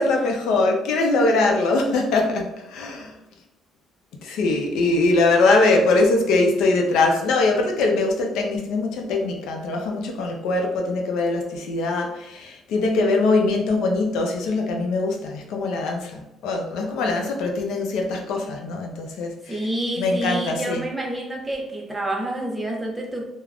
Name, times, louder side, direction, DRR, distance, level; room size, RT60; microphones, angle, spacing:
voice 1, 0.0-3.2 4.2-19.7 20.0-20.8, left 3 dB, 80° left, 2 dB, 0.5 m, -22 dB
voice 2, 19.5-23.2, right 1 dB, 10° right, -1 dB, 0.5 m, -28 dB
3.4 x 2.1 x 2.4 m, 0.90 s
cardioid pair, 160°, 0 cm